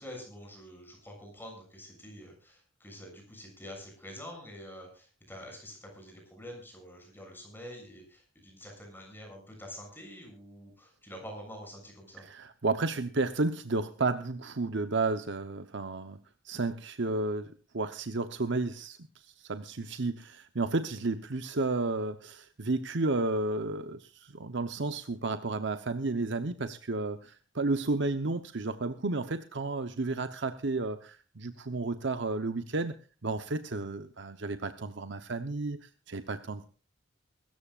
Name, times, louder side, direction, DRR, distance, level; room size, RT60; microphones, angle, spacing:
voice 1, 0.0-12.2, equal, 10° left, 2 dB, 7.0 m, -47 dB
voice 2, 12.2-16.2 16.4-32.9 33.2-36.7, right 3 dB, 65° right, 9 dB, 0.9 m, -32 dB
24.0 x 14.0 x 2.5 m, 0.36 s
head